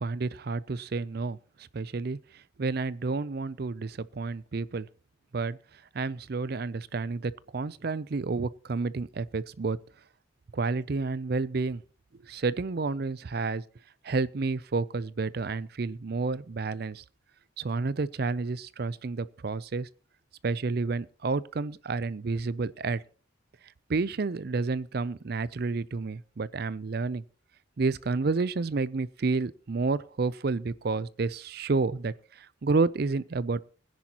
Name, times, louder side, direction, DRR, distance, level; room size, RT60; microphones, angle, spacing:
voice 1, 0.0-1.4 1.7-2.2 2.6-4.9 5.3-5.6 5.9-9.8 10.5-11.8 12.2-13.6 14.0-17.0 17.6-19.9 20.4-23.0 23.9-27.2 27.8-33.6, right 3 dB, 50° right, 0.5 m, -30 dB
20.5 x 10.5 x 2.9 m
head